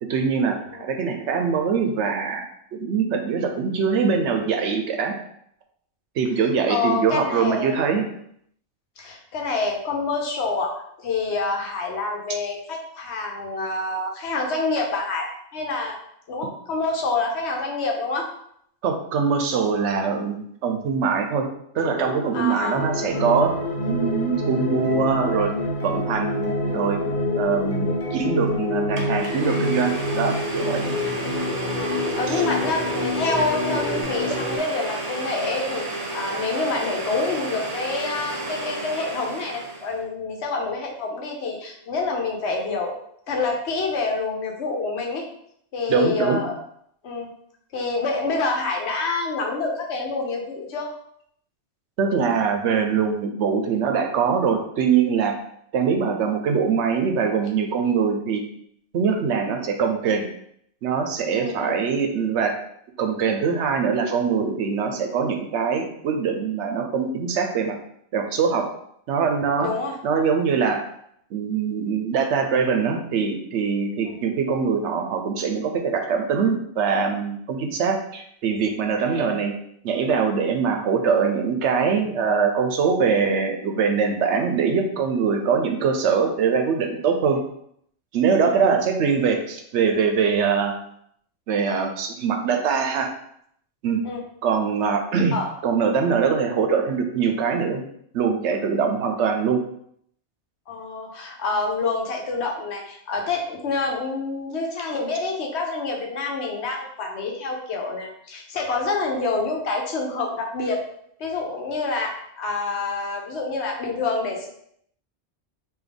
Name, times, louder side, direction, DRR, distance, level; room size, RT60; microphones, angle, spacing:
voice 1, 0.0-5.1 6.2-8.1 18.8-21.5 21.7-23.5 23.9-25.5 25.8-27.0 27.3-30.8 32.3-32.4 45.9-46.4 52.0-55.3 55.7-58.4 58.9-60.3 60.8-62.6 63.0-67.7 68.1-68.7 69.1-69.7 70.0-70.8 71.3-79.5 79.8-87.4 88.1-90.8 91.5-93.1 93.8-94.0 94.4-95.4 95.6-97.9 98.1-99.6, right 6 dB, 80° right, 4 dB, 0.9 m, -23 dB
voice 2, 6.7-7.9 9.0-15.3 15.5-16.0 16.3-18.3 22.3-23.2 26.7-26.9 27.5-27.7 30.8-31.0 31.8-35.8 36.1-42.9 43.3-45.2 45.7-46.6 47.0-47.3 47.7-50.9 61.3-61.8 69.6-70.0 74.0-74.1 79.1-79.2 88.4-88.8 94.0-94.2 95.3-95.5 100.7-110.8 111.2-114.5, left 3 dB, 70° left, 0 dB, 1.1 m, -27 dB
sound 1, 21.7-34.0, left 3 dB, 15° left, 0.6 m, -32 dB
sound 2, 22.7-34.6, equal, 55° left, 0.7 m, -28 dB
Domestic sounds home sounds, 28.5-28.6 29.0-40.0, right 2 dB, 45° right, 0.5 m, -32 dB
3.4 x 2.7 x 3.9 m, 0.70 s
omnidirectional pair, 1.2 m